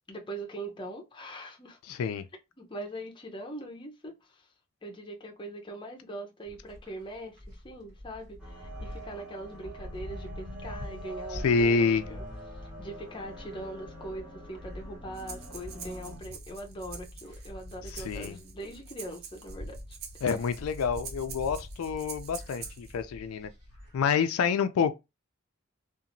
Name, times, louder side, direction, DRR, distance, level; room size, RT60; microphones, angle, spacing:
voice 1, 0.1-1.8 2.6-4.5 4.8-12.2 12.6-20.3, right 1 dB, 20° left, 0.5 m, -42 dB
voice 2, 1.9-2.2 11.3-12.0 18.0-18.4 20.2-23.5 23.9-24.9, left 5 dB, 85° left, 0.3 m, -27 dB
sound 1, 6.4-24.0, left 1 dB, 65° right, 1.4 m, -45 dB
sound 2, 8.4-16.2, right 1 dB, 5° right, 0.9 m, -46 dB
Breathing, 15.1-22.9, right 7 dB, 45° right, 0.5 m, -46 dB
2.8 x 2.4 x 2.5 m
head